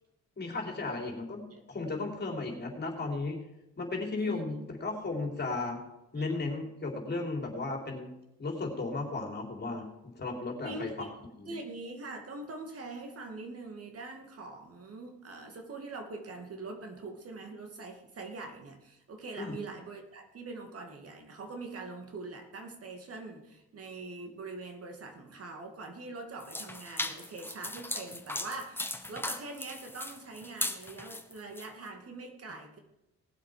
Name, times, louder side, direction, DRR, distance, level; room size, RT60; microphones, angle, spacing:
voice 1, 0.4-3.4 3.8-5.8 6.1-8.1 8.4-9.9 10.2-11.1 11.4-11.6 19.4-19.5, left 3 dB, 35° left, 2 dB, 3.5 m, -35 dB
voice 2, 4.2-4.7 6.2-6.3 10.6-11.1 11.5-32.8, right 3 dB, 50° right, 4 dB, 2.4 m, -43 dB
sound 1, 26.4-31.7, left 1 dB, 5° left, 1.2 m, -37 dB
18.5 x 7.5 x 5.1 m, 0.88 s
cardioid pair, 90°, 30 cm